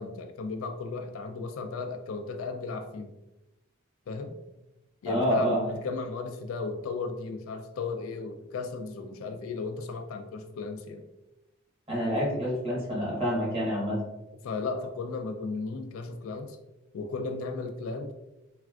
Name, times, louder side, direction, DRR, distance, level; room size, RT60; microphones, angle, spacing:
voice 1, 0.0-3.1 4.1-4.4 5.0-11.0 14.4-16.6 16.9-18.1, left 4 dB, 85° left, 6 dB, 0.4 m, -35 dB
voice 2, 5.0-5.6 11.9-14.0, equal, 30° right, -6 dB, 1.3 m, -27 dB
3.2 x 2.4 x 2.3 m, 0.95 s
head